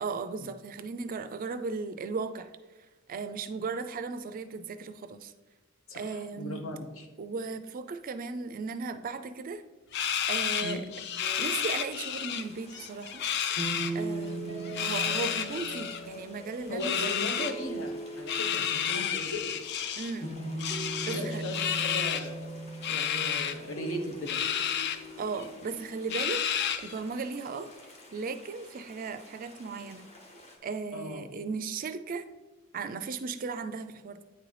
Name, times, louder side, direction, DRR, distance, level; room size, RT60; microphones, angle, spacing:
voice 1, 0.0-2.5 3.1-5.3 5.9-6.6 7.2-9.6 10.3-10.8 11.4-13.2 13.9-16.9 17.2-17.3 20.0-20.3 21.0-21.4 25.2-26.4 26.8-27.7 28.1-30.1 30.6-32.2 32.7-34.2, right 4 dB, 40° right, 10 dB, 0.4 m, -36 dB
voice 2, 5.9-7.1 10.6-10.8 16.7-19.5 21.1-22.5 22.9-24.4 30.9-31.3, left 1 dB, 75° left, 3 dB, 0.9 m, -37 dB
sound 1, 9.9-12.4 12.7-13.9 14.7-16.0 16.8-17.5 18.3-20.2 20.6-22.3 22.8-23.5 24.3-25.0 25.4-25.5 26.1-27.0, left 9 dB, 55° left, 0.4 m, -31 dB
sound 2, 11.2-30.6, right 2 dB, 30° left, 0.9 m, -41 dB
9.2 x 3.9 x 3.2 m, 1.1 s
head